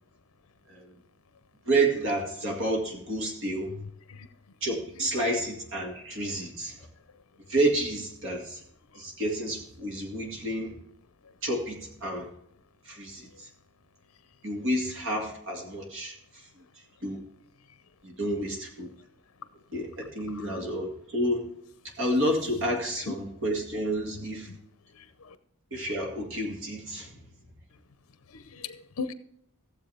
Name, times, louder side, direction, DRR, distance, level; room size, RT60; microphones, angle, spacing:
voice 1, 1.7-3.7 4.6-6.9 7.5-8.6 9.0-10.7 11.4-12.3 12.9-13.5 14.4-16.2 17.0-17.2 18.0-18.9 19.7-21.5 22.0-24.5 25.7-27.2, right 1 dB, 60° right, 1 dB, 2.0 m, -30 dB
voice 2, 28.3-29.1, left 5 dB, 70° left, 12 dB, 0.6 m, -37 dB
15.0 x 7.5 x 3.4 m, 0.72 s
head